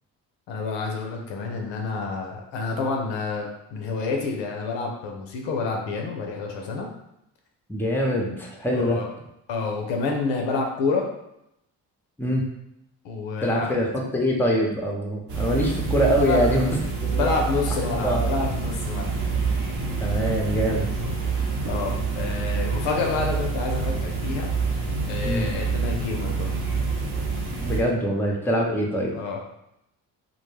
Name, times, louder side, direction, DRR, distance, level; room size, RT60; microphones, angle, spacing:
voice 1, 0.5-6.9 8.7-9.1 9.5-11.1 13.0-13.7 16.2-16.4 16.7-16.8 17.1-19.1 21.4-24.5 25.1-26.5 29.2-29.4, left 4 dB, 80° left, 1 dB, 0.6 m, -28 dB
voice 2, 7.7-9.0 12.2-12.4 13.4-17.4 17.8-18.3 20.0-20.9 25.2-25.5 27.6-29.2, equal, 5° left, -1 dB, 0.6 m, -24 dB
sound 1, 15.3-27.8, right 4 dB, 60° right, 0.8 m, -27 dB
2.2 x 2.1 x 3.1 m, 0.82 s
supercardioid pair, 55°, 43 cm